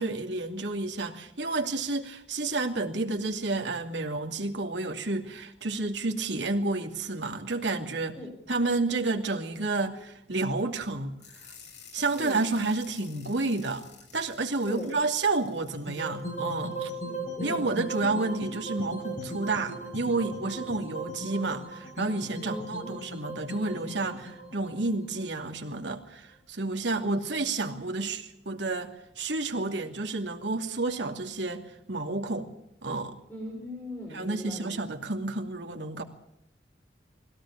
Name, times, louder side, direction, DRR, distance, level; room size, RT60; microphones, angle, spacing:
voice 1, 0.0-8.2 8.5-11.2 11.9-13.8 14.1-16.9 17.4-32.5 32.8-33.2 34.1-36.0, right 3 dB, 85° right, 3 dB, 2.6 m, -30 dB
sound 1, 11.2-17.0, left 6 dB, 80° left, 6.2 m, -52 dB
sound 2, 15.7-25.9, right 1 dB, 45° left, 5.5 m, -38 dB
voice 2, 17.0-17.7 22.4-23.1 28.0-28.1 33.3-34.8, left 1 dB, 10° left, -3 dB, 5.8 m, -39 dB
21.5 x 17.0 x 8.7 m, 0.82 s
head